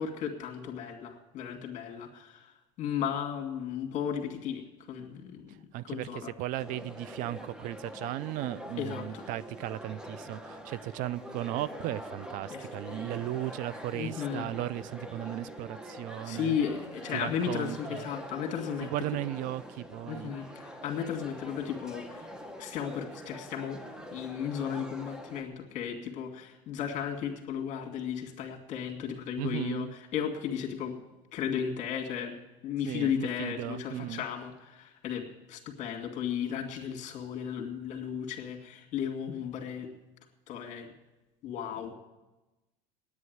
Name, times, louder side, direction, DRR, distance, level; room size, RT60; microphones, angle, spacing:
voice 1, 0.0-2.5 2.8-6.3 8.8-9.2 12.5-13.2 13.9-14.5 16.2-18.9 20.1-22.3 22.6-23.8 24.1-29.9 30.1-30.9 31.3-32.3 32.6-39.9 40.5-40.9 41.4-42.0, left 8 dB, 50° left, 2 dB, 2.4 m, -35 dB
voice 2, 5.5-16.6 17.1-18.1 18.8-20.4 29.4-29.9 32.9-34.2, right 14 dB, 60° right, 19 dB, 0.4 m, -36 dB
sound 1, 6.6-25.4, equal, 5° right, 1.2 m, -44 dB
9.6 x 9.4 x 9.3 m, 1.1 s
supercardioid pair, 110°, 16 cm